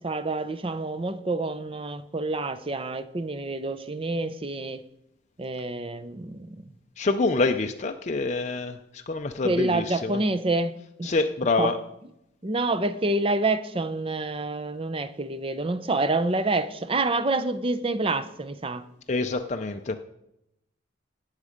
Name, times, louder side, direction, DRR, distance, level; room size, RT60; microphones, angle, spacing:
voice 1, 0.0-4.8 5.4-6.7 9.4-11.1 11.6-11.7 12.4-18.9, right 2 dB, 30° right, 0.6 m, -27 dB
voice 2, 7.0-10.2 11.0-11.8 19.1-20.0, left 3 dB, 35° left, 0.5 m, -26 dB
18.0 x 7.3 x 5.1 m
head